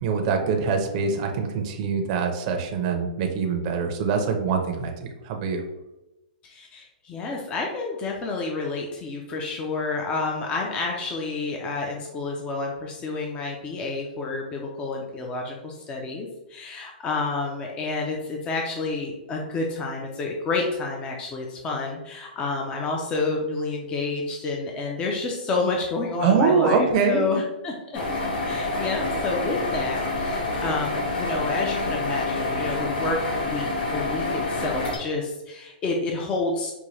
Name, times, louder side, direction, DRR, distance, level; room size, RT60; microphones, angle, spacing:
voice 1, 0.0-5.6 26.2-27.4, right 5 dB, 40° right, 3 dB, 0.6 m, -24 dB
voice 2, 6.4-28.0 28.4-36.7, left 3 dB, 20° left, 0 dB, 0.5 m, -29 dB
sound 1, 27.9-35.0, left 2 dB, 85° left, 1.5 m, -27 dB
5.1 x 2.2 x 3.1 m, 0.95 s
hypercardioid pair, 150°, 5 cm